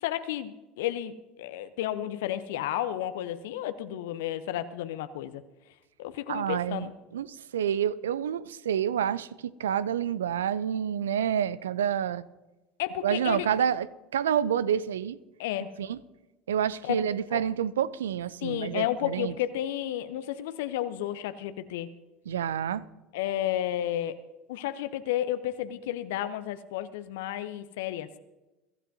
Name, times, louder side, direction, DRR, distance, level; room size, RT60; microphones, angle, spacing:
voice 1, 0.0-5.4 6.0-6.9 12.8-13.5 15.4-15.7 16.8-17.0 17.3-17.4 18.4-21.9 23.1-24.2 24.5-28.1, left 12 dB, 65° left, 0.7 m, -32 dB
voice 2, 6.3-12.2 13.0-15.2 15.8-16.0 16.5-19.3 22.3-22.8, right 9 dB, 75° right, 0.5 m, -28 dB
23.0 x 13.5 x 2.7 m
figure-of-eight pair, 70°, 0 cm